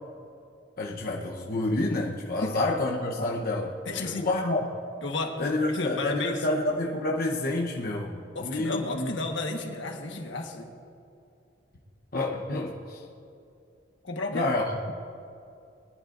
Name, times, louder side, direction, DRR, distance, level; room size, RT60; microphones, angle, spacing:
voice 1, 0.8-4.7 5.4-9.2 12.1-13.1 14.3-14.9, left 2 dB, 50° left, -1 dB, 1.0 m, -29 dB
voice 2, 3.9-4.3 5.0-6.4 8.3-10.7 14.0-14.5, left 3 dB, 75° left, 2 dB, 1.4 m, -32 dB
21.5 x 11.0 x 2.6 m, 2.6 s
head